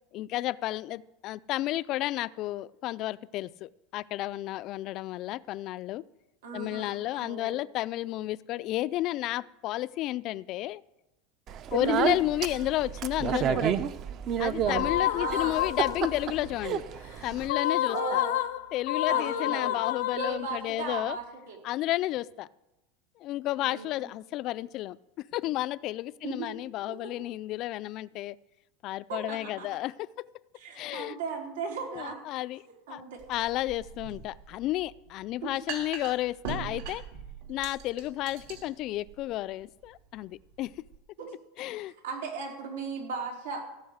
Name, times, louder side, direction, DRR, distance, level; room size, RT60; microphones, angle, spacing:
voice 1, 0.1-6.0 6.5-10.8 11.7-13.8 14.4-16.8 17.2-18.2 18.7-21.2 21.6-22.5 23.2-28.4 28.8-30.1 30.7-31.2 31.9-32.6 32.9-33.0 33.3-37.0 37.5-40.7 41.6-41.9, left 16 dB, 40° left, 18 dB, 0.3 m, -32 dB
voice 2, 6.4-7.6 11.8-12.1 15.2-15.6 17.9-18.4 19.1-19.8 20.1-21.6 23.6-24.1 26.2-26.5 26.9-27.1 29.1-29.7 30.6-32.2 32.9-33.4 35.4-35.5 41.2-41.3 42.0-43.7, right 4 dB, 90° right, 1 dB, 4.0 m, -36 dB
Speech, 11.5-17.5, right 9 dB, 35° right, 0.6 m, -31 dB
sound 1, 14.7-16.3 17.4-20.8, left 13 dB, 80° left, 0.7 m, -30 dB
sound 2, 33.2-41.0, right 6 dB, 70° right, 2.7 m, -42 dB
16.0 x 5.6 x 7.9 m, 0.97 s
supercardioid pair, 155°, 0 cm